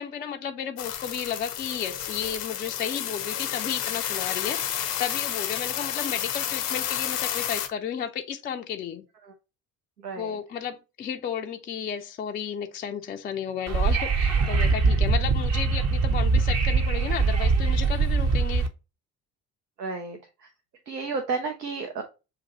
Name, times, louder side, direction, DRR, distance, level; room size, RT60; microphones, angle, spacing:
voice 1, 0.0-9.0 10.2-18.6, left 8 dB, 20° left, 0.3 m, -33 dB
sound 1, 0.8-7.7, left 10 dB, 75° left, 0.7 m, -31 dB
voice 2, 10.0-10.4 19.8-20.5 20.9-22.0, right 4 dB, 85° right, 0.6 m, -32 dB
Wind / Subway metro underground, 13.7-18.7, right 4 dB, 35° right, 0.7 m, -22 dB
6.6 x 2.5 x 2.8 m
figure-of-eight pair, 50°, 47 cm